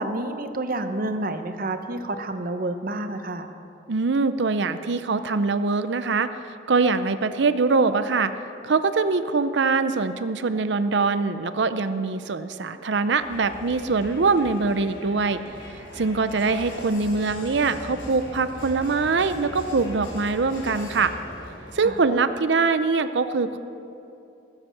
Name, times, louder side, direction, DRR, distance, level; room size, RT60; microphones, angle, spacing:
voice 1, 0.0-3.5 21.8-22.0, right 2 dB, 50° right, 8 dB, 0.9 m, -29 dB
voice 2, 3.9-6.3 6.7-8.3 8.6-15.4 16.0-21.1 21.7-23.6, right 4 dB, 65° right, 11 dB, 0.6 m, -23 dB
Crowd, 13.2-22.0, left 1 dB, 90° left, 3.5 m, -40 dB
20.5 x 8.0 x 7.2 m, 2.8 s
head